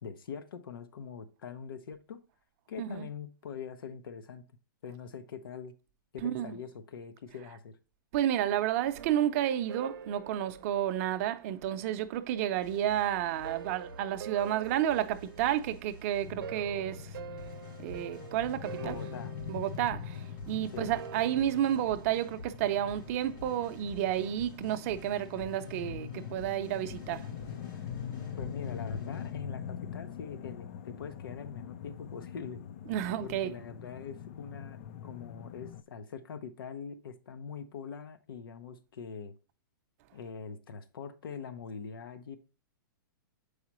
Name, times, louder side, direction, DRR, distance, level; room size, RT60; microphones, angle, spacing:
voice 1, 0.0-2.2 2.7-4.4 4.8-5.7 6.1-7.8 18.8-19.3 20.7-20.9 28.4-32.6 33.2-39.3 40.1-42.4, left 6 dB, 85° left, 0.7 m, -43 dB
voice 2, 6.2-6.6 8.1-17.2 17.8-19.0 19.5-27.3 32.9-33.5, right 11 dB, 40° right, 0.6 m, -31 dB
sound 1, 8.9-11.9 13.2-22.4, right 8 dB, 90° right, 0.6 m, -47 dB
sound 2, 12.5-29.3, left 1 dB, 65° left, 3.4 m, -50 dB
sound 3, 16.2-35.8, left 8 dB, 45° left, 0.4 m, -43 dB
7.3 x 4.8 x 3.0 m
hypercardioid pair, 150°, 11 cm